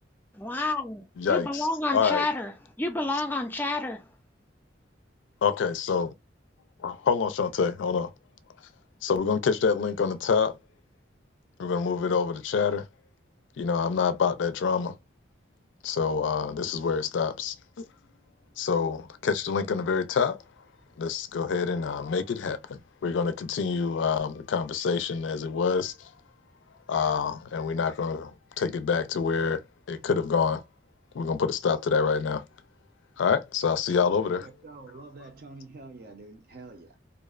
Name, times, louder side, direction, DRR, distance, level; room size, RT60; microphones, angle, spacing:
voice 1, 0.3-2.5 2.8-4.1, left 2 dB, 10° left, 0.4 m, -29 dB
voice 2, 1.2-1.7 1.9-2.2 5.4-6.1 6.8-8.1 9.0-10.6 11.6-12.9 13.6-14.9 15.8-17.9 18.6-20.4 21.0-26.1 26.9-30.6 31.1-32.5 33.2-34.5, left 5 dB, 85° left, 0.4 m, -27 dB
voice 3, 34.4-37.0, right 3 dB, 55° right, 0.6 m, -46 dB
2.5 x 2.1 x 2.4 m
head